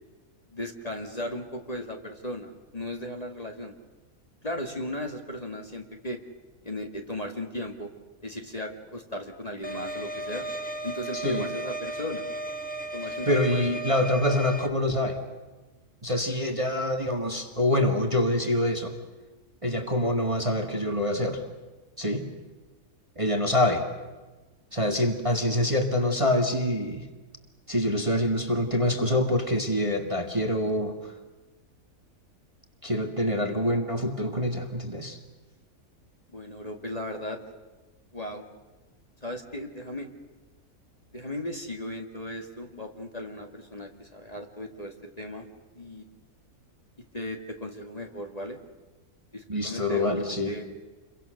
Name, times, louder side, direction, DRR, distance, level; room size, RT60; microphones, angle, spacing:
voice 1, 0.5-3.7 4.4-6.2 6.6-7.9 8.2-10.5 10.8-12.3 12.9-13.8 36.3-37.4 38.1-38.4 39.2-40.1 41.1-45.5 45.7-46.0 47.1-48.6 49.3-50.1 50.5-50.6, left 1 dB, 25° left, 3 dB, 2.1 m, -36 dB
sound 1, 9.6-14.7, right 1 dB, 5° left, 1.4 m, -35 dB
voice 2, 11.1-11.5 13.0-15.2 16.0-18.9 19.6-21.4 22.0-22.2 23.2-23.8 24.7-27.1 27.7-31.1 32.8-35.2 49.5-50.5, left 1 dB, 20° right, 4 dB, 1.7 m, -26 dB
29.0 x 23.5 x 6.5 m, 1.2 s
omnidirectional pair, 1.6 m